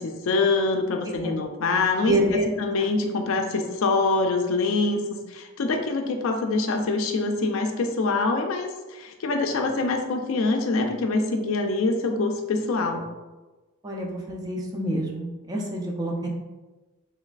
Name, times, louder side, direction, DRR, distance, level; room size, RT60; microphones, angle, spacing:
voice 1, 0.0-13.0, left 3 dB, 70° left, 4 dB, 0.4 m, -25 dB
voice 2, 2.0-2.5 13.8-16.3, right 1 dB, 20° right, -1 dB, 0.4 m, -27 dB
3.2 x 3.0 x 2.4 m, 1.2 s
head